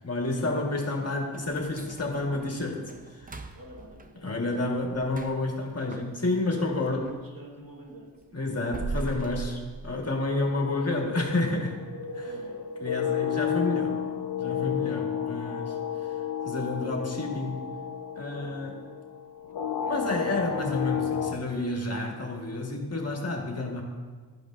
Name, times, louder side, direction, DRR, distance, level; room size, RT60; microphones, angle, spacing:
voice 1, 0.0-2.8 3.1-3.4 4.2-7.1 8.3-11.8 12.1-12.3 12.8-14.0 14.4-15.8 16.0-16.1 16.4-17.6 18.2-18.8 19.8-23.8, left 2 dB, 40° left, 0 dB, 1.4 m, -30 dB
sound 1, 1.3-7.3 7.6-10.5 10.8-10.9 11.4-11.5 12.1-12.4 12.7-12.8 13.4-13.5, right 3 dB, 20° right, 0.6 m, -41 dB
voice 2, 3.5-4.7 6.5-8.5 12.2-12.6 18.3-18.7, right 1 dB, 55° right, -3 dB, 2.3 m, -46 dB
sound 2, 10.5-21.4, left 8 dB, 70° left, 0.6 m, -32 dB
12.5 x 5.2 x 2.5 m, 1.5 s
cardioid pair, 45°, 40 cm